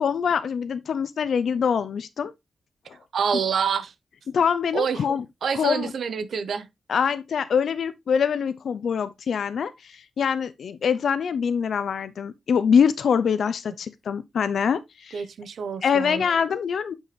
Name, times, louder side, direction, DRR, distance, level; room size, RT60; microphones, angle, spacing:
voice 1, 0.0-2.3 4.3-5.2 5.5-5.9 6.9-15.3 15.8-17.0, left 7 dB, 75° left, 0.5 m, -24 dB
voice 2, 3.1-3.9 4.7-5.0 5.4-6.7 15.1-16.2, right 6 dB, 75° right, 0.9 m, -27 dB
8.9 x 5.5 x 3.2 m
wide cardioid pair, 145°, 0 cm